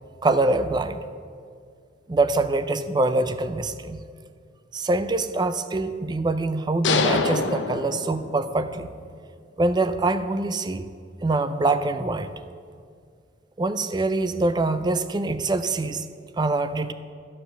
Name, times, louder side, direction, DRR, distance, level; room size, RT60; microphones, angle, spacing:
voice 1, 0.2-1.0 2.1-4.0 4.7-8.9 9.6-10.9 11.2-12.3 13.6-16.0 16.4-16.9, right 2 dB, 25° right, 11 dB, 0.4 m, -24 dB
sound 1, 6.8-8.7, left 4 dB, 80° left, 0.7 m, -25 dB
13.0 x 4.9 x 6.8 m, 2.2 s
head